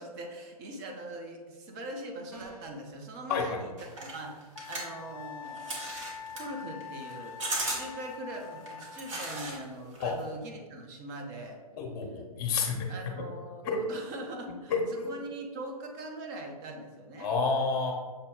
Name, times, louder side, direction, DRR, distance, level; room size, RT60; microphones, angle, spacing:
voice 1, 0.0-3.7 4.0-11.6 12.1-12.2 12.4-12.5 12.9-17.3, right 1 dB, 30° right, 3 dB, 0.6 m, -42 dB
sound 1, 2.3-2.8, right 2 dB, 80° right, 1.3 m, -47 dB
sound 2, 3.8-9.6 9.9-10.4, right 2 dB, 55° right, 1.3 m, -37 dB
Wind instrument woodwind instrument, 4.6-9.4, left 7 dB, 60° left, 0.4 m, -44 dB
voice 2, 11.8-12.9 13.1-13.2 13.6-13.8 14.7-15.1 17.2-17.9, left 4 dB, 35° left, 2 dB, 0.8 m, -29 dB
6.5 x 2.2 x 3.6 m, 1.4 s
figure-of-eight pair, 120°, 20 cm